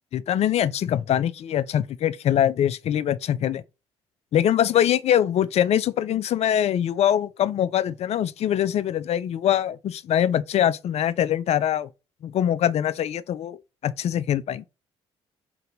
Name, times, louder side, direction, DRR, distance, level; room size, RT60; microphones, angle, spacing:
voice 1, 0.1-3.6 4.3-11.9 12.2-13.6 13.8-14.6, left 10 dB, 50° left, 0.4 m, -23 dB
2.8 x 2.6 x 3.9 m
hypercardioid pair, 50°, 14 cm